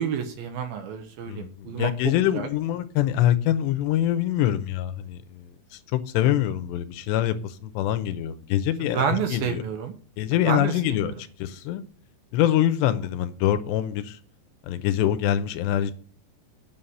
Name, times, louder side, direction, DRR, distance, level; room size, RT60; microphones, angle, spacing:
voice 1, 0.0-2.5 8.8-9.9 10.5-11.2, right 7 dB, 70° right, 2.4 m, -29 dB
voice 2, 1.3-9.6 10.2-11.1 11.4-11.8 12.3-14.2 14.6-15.9, left 12 dB, 85° left, 2.8 m, -25 dB
8.6 x 5.7 x 7.8 m
omnidirectional pair, 5.1 m